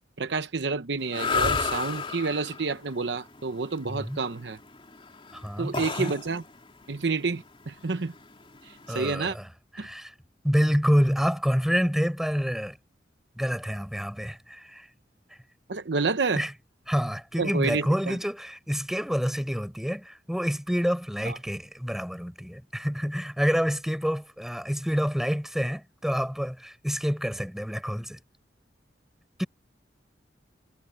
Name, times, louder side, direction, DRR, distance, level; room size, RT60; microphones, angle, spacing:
voice 1, 0.2-4.6 5.6-6.4 6.9-8.1 8.6-9.4 9.8-9.9 15.7-16.4 17.4-18.2 21.2-21.4, right 4 dB, 70° right, 0.8 m, -29 dB
sound 1, 1.0-9.1, left 5 dB, 30° left, 3.5 m, -32 dB
voice 2, 3.9-4.2 5.3-6.1 8.9-9.5 9.8-10.1 10.4-12.8 13.4-14.8 16.3-16.5 16.9-28.2 29.4-29.5, equal, ahead, 6.4 m, -27 dB
head